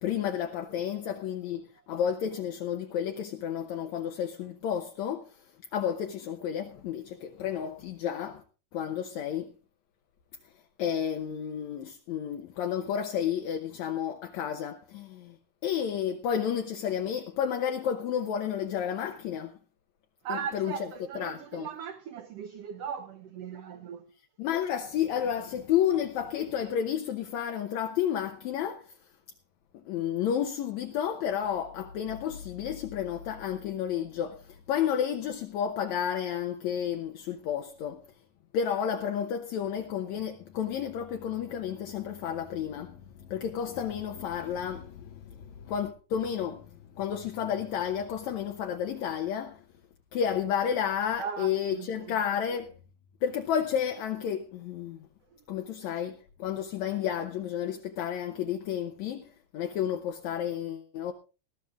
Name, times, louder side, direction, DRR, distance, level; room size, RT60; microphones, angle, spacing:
voice 1, 0.0-5.3 5.7-8.4 8.7-9.5 10.8-15.4 15.6-19.5 20.3-20.7 21.2-21.7 24.4-28.9 29.9-38.0 38.5-46.7 47.0-49.6 50.1-52.7 53.2-55.1 55.5-61.1, left 9 dB, 70° left, 2.0 m, -31 dB
voice 2, 20.2-24.0 51.2-52.2, right 7 dB, 70° right, 1.5 m, -38 dB
20.0 x 13.5 x 2.5 m
omnidirectional pair, 3.7 m